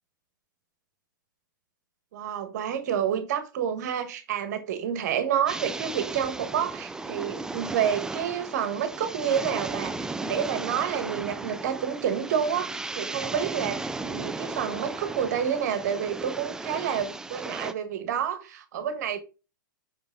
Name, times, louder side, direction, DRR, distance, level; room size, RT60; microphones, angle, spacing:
voice 1, 2.1-19.2, right 8 dB, 55° right, 1.4 m, -29 dB
sound 1, 5.5-17.7, right 3 dB, 5° right, 0.4 m, -35 dB
5.6 x 5.3 x 3.8 m
figure-of-eight pair, 110°, 11 cm